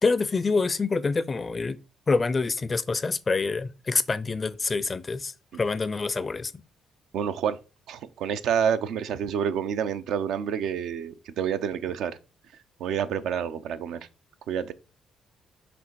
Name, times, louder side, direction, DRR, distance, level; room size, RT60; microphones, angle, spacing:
voice 1, 0.0-1.8 2.1-6.5, left 4 dB, 30° left, 0.5 m, -26 dB
voice 2, 7.1-7.6 7.9-12.2 12.8-14.1 14.5-14.7, right 8 dB, 85° right, 0.6 m, -28 dB
6.0 x 3.5 x 4.6 m
cardioid pair, 90°, 0 cm